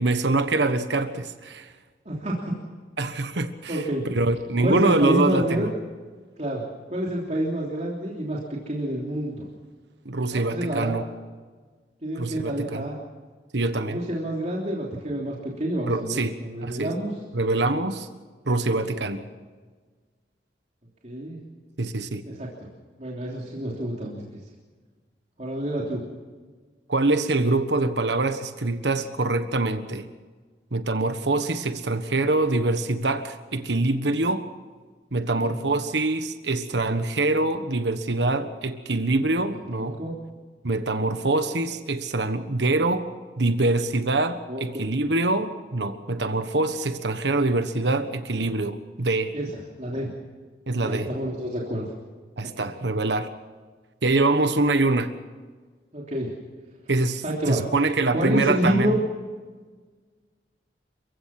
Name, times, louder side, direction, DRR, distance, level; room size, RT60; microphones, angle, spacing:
voice 1, 0.0-1.7 3.0-5.7 10.0-11.0 12.2-12.8 13.5-14.0 15.9-16.3 16.6-16.9 17.3-18.1 18.5-19.2 21.8-22.2 26.9-30.0 30.7-34.5 35.1-40.0 40.6-43.1 43.4-49.3 50.7-51.1 52.4-53.3 54.0-55.1 56.9-59.0, right 2 dB, 80° right, 9 dB, 1.4 m, -24 dB
voice 2, 2.0-2.5 3.7-4.1 4.6-5.6 6.4-9.4 10.3-11.0 12.0-13.0 13.8-17.1 18.7-18.8 21.0-21.4 22.2-22.7 23.0-24.2 25.4-26.0 35.2-35.5 39.7-40.1 44.5-44.9 49.3-49.5 49.8-50.1 50.8-51.8 52.4-52.7 55.9-56.4 57.2-57.6 58.1-59.0, right 1 dB, 40° right, -3 dB, 3.3 m, -28 dB
29.5 x 16.0 x 6.0 m, 1.4 s
head